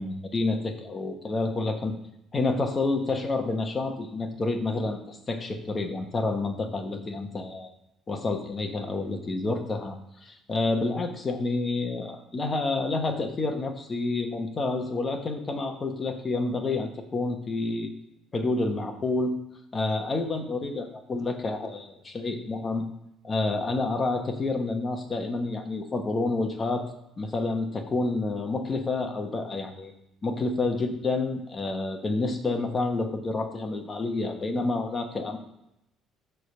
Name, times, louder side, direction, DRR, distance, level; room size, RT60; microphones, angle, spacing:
voice 1, 0.0-1.9 2.3-7.7 8.1-9.9 10.2-17.9 18.3-19.3 19.7-22.8 23.2-26.9 27.2-29.9 30.2-35.4, left 3 dB, 20° left, 4 dB, 1.0 m, -29 dB
9.2 x 3.4 x 6.6 m, 0.82 s
cardioid pair, 160°, 0 cm